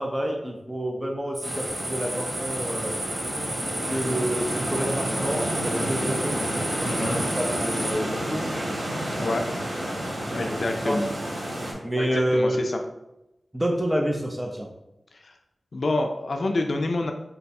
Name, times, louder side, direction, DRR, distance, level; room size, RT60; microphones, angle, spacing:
voice 1, 0.0-3.0 3.9-6.4 6.9-8.7 9.0-9.4 10.3-11.0 11.8-12.7 13.5-14.7, equal, 10° right, 1 dB, 0.5 m, -28 dB
sound 1, 1.3-7.9, right 1 dB, 65° right, 1.0 m, -33 dB
sound 2, 1.4-11.7, equal, 90° right, 1.3 m, -30 dB
voice 2, 6.8-7.2 9.1-9.4 10.3-11.1 12.0-12.8 15.2-15.4 15.7-17.1, left 2 dB, 65° left, 4 dB, 0.4 m, -27 dB
3.8 x 2.3 x 4.1 m, 0.90 s
wide cardioid pair, 90°, 0 cm